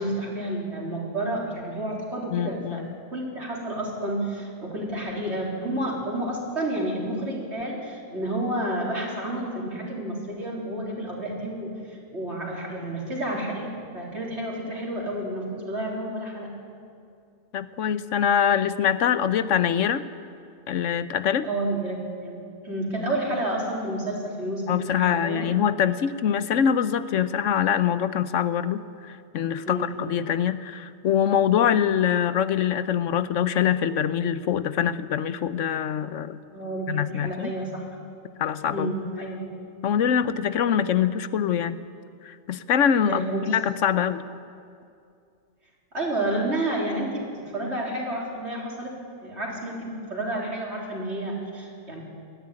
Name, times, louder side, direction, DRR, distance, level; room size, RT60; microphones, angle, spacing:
voice 1, 0.0-2.8 3.1-16.5 21.4-22.4 22.6-25.5 29.6-30.0 36.5-37.8 38.7-39.4 43.1-43.6 45.9-52.0, right 1 dB, 60° right, -3 dB, 4.2 m, -30 dB
voice 2, 2.3-2.9 17.5-20.0 20.7-21.5 24.7-36.4 36.9-37.5 38.4-38.9 39.8-41.8 42.2-44.2, left 8 dB, 80° left, 13 dB, 1.1 m, -24 dB
20.0 x 13.5 x 9.8 m, 2.4 s
omnidirectional pair, 1.3 m